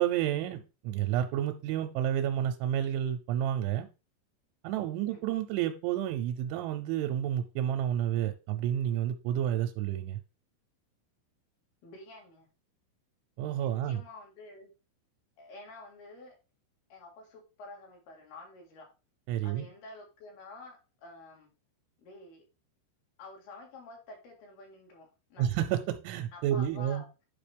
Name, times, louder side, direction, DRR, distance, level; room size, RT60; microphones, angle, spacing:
voice 1, 0.0-3.9 4.6-10.2 13.4-14.0 19.3-19.7 25.4-27.0, right 11 dB, 85° right, 6 dB, 3.1 m, -30 dB
voice 2, 11.8-12.5 13.6-14.7 15.4-16.4 16.9-18.9 19.4-21.5 22.0-22.4 23.2-25.5 26.3-27.1, left 3 dB, 60° left, 0 dB, 3.5 m, -49 dB
10.5 x 5.2 x 3.4 m, 0.30 s
omnidirectional pair, 5.4 m